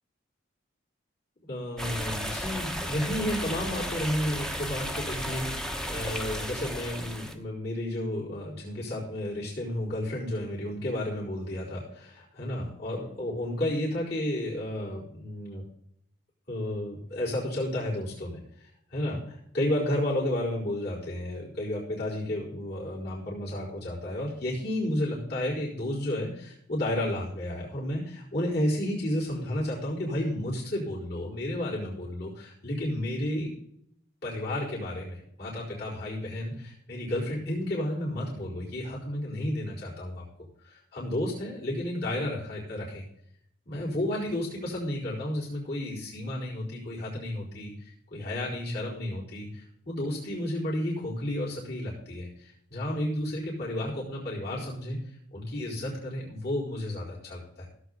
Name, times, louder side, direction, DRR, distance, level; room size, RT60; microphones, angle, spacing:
voice 1, 1.5-15.6 16.5-33.5 34.2-40.2 40.6-43.0 43.7-55.0 55.3-57.7, left 1 dB, 55° left, -8 dB, 4.6 m, -32 dB
sound 1, 1.8-7.3, equal, 5° left, 0.9 m, -34 dB
16.5 x 8.0 x 4.2 m, 0.71 s
head